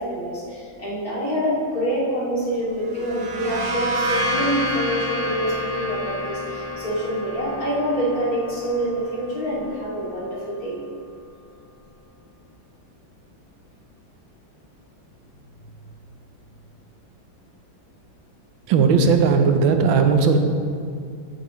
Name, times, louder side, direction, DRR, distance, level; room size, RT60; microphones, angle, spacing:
voice 1, 0.0-10.8, equal, 45° left, -7 dB, 3.1 m, -26 dB
sound 1, 2.8-10.4, equal, 65° right, 1.9 m, -29 dB
voice 2, 18.7-20.4, right 5 dB, 85° right, 6 dB, 1.6 m, -17 dB
15.0 x 8.6 x 3.1 m, 2.3 s
omnidirectional pair, 2.1 m